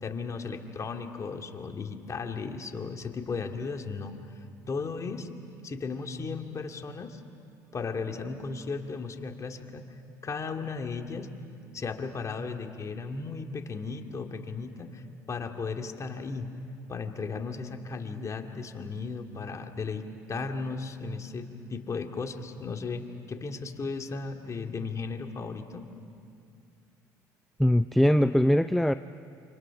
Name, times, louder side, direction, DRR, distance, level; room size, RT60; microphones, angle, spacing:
voice 1, 0.0-4.1 4.7-5.3 5.6-7.2 7.7-9.8 10.2-11.3 11.7-16.5 16.9-25.9, left 4 dB, 35° left, 4 dB, 2.3 m, -35 dB
voice 2, 27.6-28.9, equal, ahead, 12 dB, 0.5 m, -21 dB
28.0 x 26.5 x 6.0 m, 2.4 s
hypercardioid pair, 65°, 9 cm